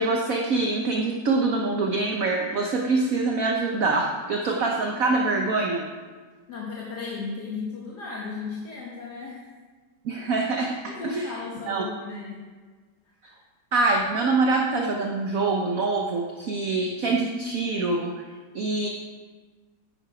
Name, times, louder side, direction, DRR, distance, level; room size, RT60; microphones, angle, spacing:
voice 1, 0.0-5.8 10.0-10.8 11.0-11.2 11.7-11.8 13.7-18.1 18.5-18.9, right 3 dB, 55° right, 1 dB, 1.1 m, -24 dB
voice 2, 6.5-9.4 10.9-12.5, left 4 dB, 60° left, -4 dB, 1.9 m, -35 dB
10.5 x 9.0 x 4.9 m, 1.4 s
omnidirectional pair, 2.1 m